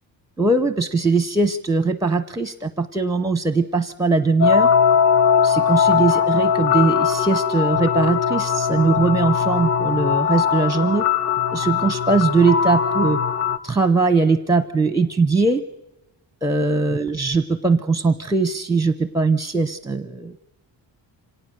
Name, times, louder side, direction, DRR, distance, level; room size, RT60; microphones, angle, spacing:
voice 1, 0.4-4.7 5.4-11.0 11.5-13.2 13.6-15.6 16.4-20.4, right 3 dB, 10° right, 13 dB, 0.7 m, -20 dB
sound 1, 4.4-13.6, left 7 dB, 35° left, 0.8 m, -20 dB
25.5 x 18.0 x 6.6 m, 0.97 s
cardioid pair, 125°, 44 cm